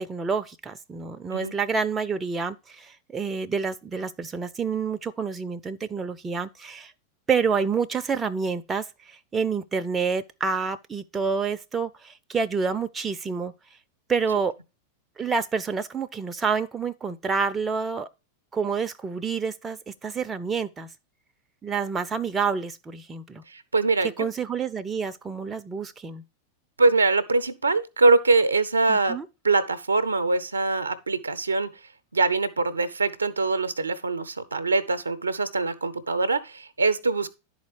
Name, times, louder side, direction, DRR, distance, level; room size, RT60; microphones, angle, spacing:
voice 1, 0.0-6.9 7.3-13.5 14.1-14.5 15.2-18.1 18.5-20.9 21.6-23.4 24.2-26.2 28.9-29.3, right 5 dB, 15° right, 0.5 m, -28 dB
voice 2, 23.5-24.3 26.8-29.2 29.4-31.7 32.1-37.3, right 3 dB, 80° right, 0.6 m, -23 dB
10.5 x 4.2 x 4.6 m
figure-of-eight pair, 90°, 0 cm